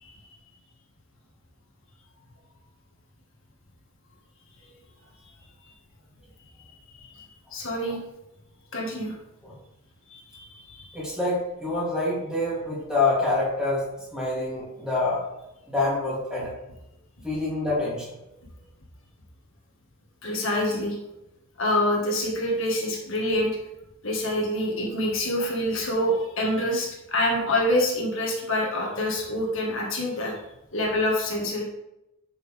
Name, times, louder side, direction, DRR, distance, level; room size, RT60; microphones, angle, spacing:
voice 1, 7.5-8.0 8.7-9.1 10.1-10.9 20.2-21.0 21.6-23.5 24.0-30.3 30.7-31.6, left 1 dB, 60° left, -2 dB, 2.0 m, -26 dB
voice 2, 10.9-13.8 14.1-15.2 15.7-16.5 17.2-18.1, left 2 dB, 5° right, -8 dB, 3.2 m, -26 dB
10.5 x 6.3 x 3.6 m, 0.90 s
head